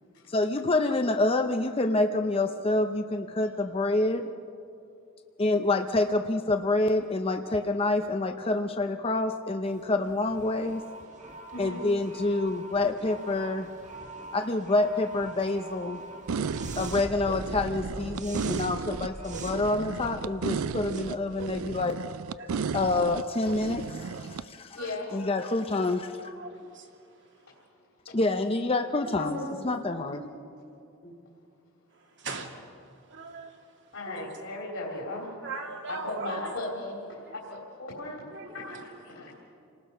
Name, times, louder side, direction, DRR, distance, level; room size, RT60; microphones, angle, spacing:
voice 1, 0.3-4.3 5.4-10.8 11.6-13.7 14.3-16.0 16.8-22.0 22.7-24.8 25.1-26.1 28.1-29.4 29.6-30.2, left 2 dB, 25° left, 6 dB, 0.6 m, -27 dB
sound 1, 9.6-22.0, right 2 dB, 35° right, 2.3 m, -43 dB
voice 2, 11.5-11.9 19.5-20.0 24.7-25.1 27.5-27.6 28.1-28.2 29.2-29.7 30.4-30.5 31.0-31.2 33.9-35.4 35.9-39.4, left 2 dB, 65° left, -3 dB, 3.4 m, -37 dB
sound 2, 16.3-24.4, right 5 dB, 80° right, 0.4 m, -34 dB
voice 3, 18.0-18.7 22.4-22.8 24.8-25.0 25.7-25.9 26.2-27.6 29.0-29.2 31.9-34.4 35.4-36.5 37.2-37.4 38.3-39.0, right 3 dB, 55° right, 2 dB, 2.3 m, -42 dB
29.0 x 19.5 x 5.5 m, 2.6 s
head